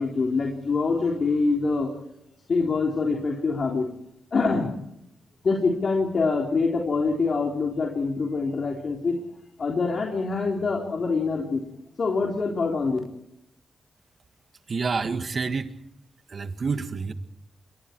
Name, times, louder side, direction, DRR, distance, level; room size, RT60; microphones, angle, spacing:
voice 1, 0.0-1.9 2.5-3.9 4.3-4.7 5.4-9.2 9.6-11.6 12.0-13.0, left 4 dB, 55° left, 0 dB, 3.8 m, -25 dB
voice 2, 14.7-15.7 16.3-17.1, right 4 dB, 50° right, 9 dB, 1.8 m, -28 dB
27.5 x 23.5 x 4.6 m, 0.81 s
cardioid pair, 80°, 0 cm